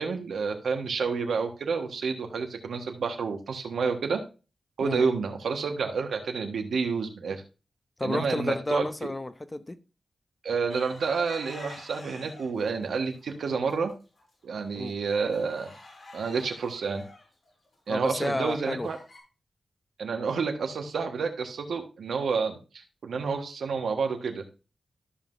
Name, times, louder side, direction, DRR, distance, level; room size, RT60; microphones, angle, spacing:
voice 1, 0.0-4.2 4.8-7.4 8.0-9.1 10.4-13.9 14.4-15.7 16.1-17.0 17.9-19.0 20.0-24.4, right 5 dB, 90° right, 1.4 m, -29 dB
voice 2, 8.0-9.8 14.7-15.0 17.9-18.9, left 2 dB, 20° left, 0.8 m, -31 dB
sound 1, 10.7-12.7 13.1-13.7 14.2-14.3 14.6-19.2, left 2 dB, 50° left, 4.1 m, -48 dB
13.0 x 5.7 x 2.6 m
cardioid pair, 75°, 0 cm